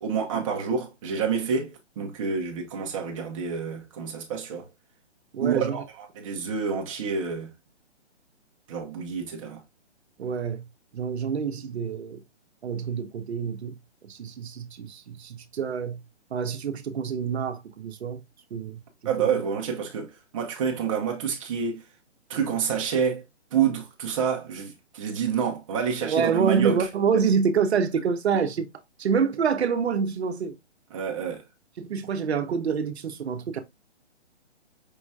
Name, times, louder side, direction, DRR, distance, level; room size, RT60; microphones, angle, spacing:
voice 1, 0.0-4.7 5.4-7.5 8.7-9.6 19.0-21.8 22.3-23.2 23.5-26.9 30.9-31.4, right 7 dB, 30° right, 0.9 m, -28 dB
voice 2, 5.3-5.8 10.2-10.6 10.9-12.2 12.6-13.8 14.0-16.0 16.3-18.2 18.5-19.3 26.0-28.7 29.0-30.5 31.8-33.6, right 6 dB, 65° right, 0.9 m, -27 dB
5.5 x 2.9 x 2.3 m
hypercardioid pair, 155°, 35 cm